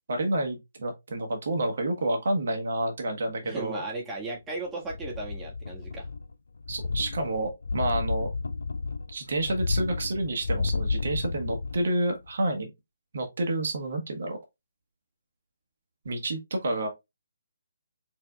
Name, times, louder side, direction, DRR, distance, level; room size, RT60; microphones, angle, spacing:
voice 1, 0.1-3.8 6.7-8.3 9.1-12.7 13.1-14.4 16.0-16.9, right 1 dB, 55° right, 1.2 m, -29 dB
voice 2, 3.4-6.1, right 2 dB, 10° right, 1.6 m, -36 dB
sound 1, 4.9-6.3 6.6-11.9 12.3-12.4, left 4 dB, 65° left, 0.5 m, -31 dB
4.5 x 4.1 x 2.2 m
figure-of-eight pair, 140°, 0 cm